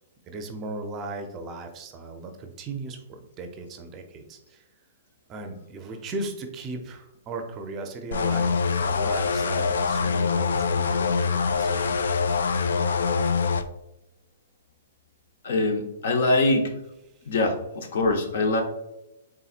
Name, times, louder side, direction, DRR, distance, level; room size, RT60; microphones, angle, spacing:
voice 1, 0.3-4.6 5.3-12.1, right 3 dB, 25° right, 5 dB, 0.5 m, -37 dB
sound 1, 8.1-13.6, left 5 dB, 85° left, 0.3 m, -24 dB
voice 2, 15.4-16.7 17.3-18.6, left 2 dB, 65° left, 5 dB, 0.8 m, -23 dB
4.1 x 3.7 x 2.4 m, 0.88 s
hypercardioid pair, 150°, 0 cm